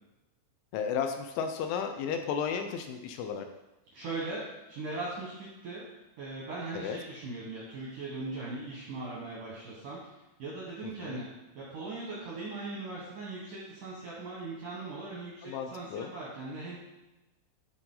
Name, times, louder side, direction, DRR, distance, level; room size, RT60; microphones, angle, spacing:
voice 1, 0.7-3.5 6.7-7.0 10.8-11.2 15.4-16.1, left 7 dB, 80° left, 6 dB, 2.8 m, -34 dB
voice 2, 3.9-5.8 6.2-10.0 10.4-11.3 11.6-16.8, right 3 dB, 80° right, -5 dB, 1.8 m, -39 dB
11.5 x 4.4 x 3.8 m, 1.0 s
omnidirectional pair, 5.8 m